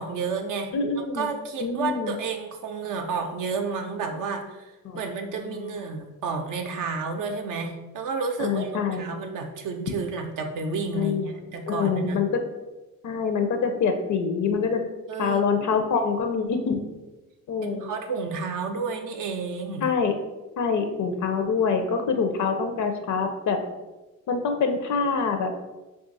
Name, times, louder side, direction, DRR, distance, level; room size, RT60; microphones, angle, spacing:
voice 1, 0.0-0.7 1.0-12.2 15.1-16.1 17.6-19.9, right 4 dB, 65° right, 4 dB, 0.4 m, -31 dB
voice 2, 0.7-1.3 1.6-2.1 4.9-5.0 5.5-5.7 8.4-9.0 10.9-11.3 11.7-12.4 13.0-14.8 15.2-16.8 17.5-17.9 19.8-20.1 20.6-23.6 24.3-25.5, left 5 dB, 60° left, 6 dB, 0.5 m, -25 dB
2.5 x 2.4 x 3.9 m, 1.1 s
cardioid pair, 80°, 34 cm